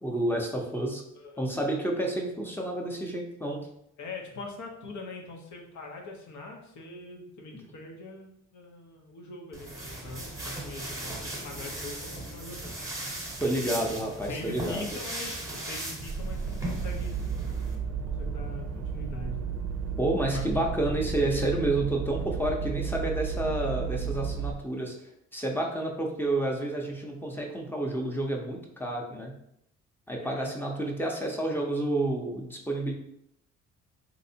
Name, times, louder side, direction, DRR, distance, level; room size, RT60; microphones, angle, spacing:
voice 1, 0.0-1.0 1.4-3.6 7.5-7.6 13.4-15.0 20.0-25.0 25.3-29.3 30.1-32.9, right 1 dB, 5° left, 0 dB, 0.6 m, -30 dB
voice 2, 1.1-1.5 4.0-12.7 14.2-17.2 17.9-19.5 20.3-20.4 30.2-30.5, left 3 dB, 70° left, 2 dB, 0.8 m, -42 dB
sound 1, 9.5-17.8, right 1 dB, 10° right, 0.9 m, -38 dB
sound 2, 16.0-24.5, right 6 dB, 55° right, 0.5 m, -33 dB
3.2 x 2.8 x 2.7 m, 0.77 s
cardioid pair, 90°, 30 cm